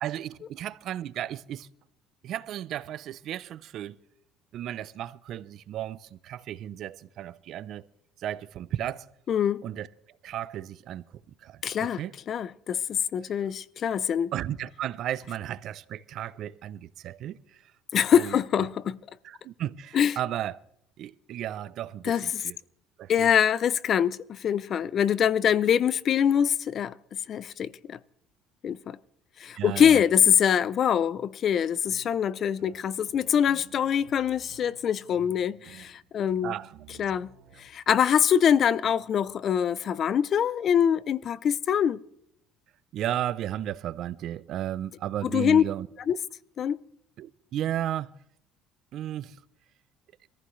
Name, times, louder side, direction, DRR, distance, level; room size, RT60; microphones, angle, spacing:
voice 1, 0.0-1.7 2.2-4.0 4.5-7.9 8.2-9.1 9.6-9.9 10.2-11.0 11.4-12.1 13.3-13.4 14.3-17.7 18.1-18.7 19.2-20.6 21.0-22.6 23.0-23.3 29.5-30.0 36.4-36.7 42.9-45.9 47.2-48.1 48.9-49.4, right 11 dB, 55° right, 0.6 m, -34 dB
voice 2, 9.3-9.6 11.6-12.0 12.3-14.3 17.9-19.0 19.9-20.1 22.0-22.4 23.1-27.0 27.3-28.0 28.6-29.0 29.4-36.5 37.0-37.3 37.6-42.0 45.3-45.6 46.1-46.2 46.6-46.8, left 8 dB, 45° left, 0.6 m, -24 dB
sound 1, 31.8-37.7, right 9 dB, 75° right, 2.2 m, -53 dB
24.5 x 15.0 x 3.2 m
cardioid pair, 120°, 0 cm